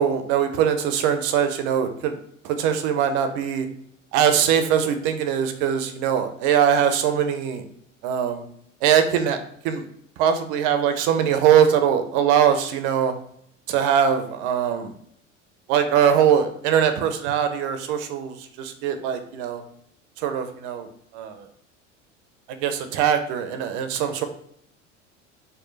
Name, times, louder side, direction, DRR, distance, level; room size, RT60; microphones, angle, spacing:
voice 1, 0.0-2.2 2.4-3.7 4.1-7.7 8.0-8.4 8.8-9.4 9.6-9.8 10.2-13.1 13.7-14.9 15.7-19.6 20.2-21.5 22.5-24.3, right 8 dB, 60° right, 7 dB, 0.6 m, -22 dB
4.5 x 2.1 x 3.2 m, 0.67 s
hypercardioid pair, 75°, 38 cm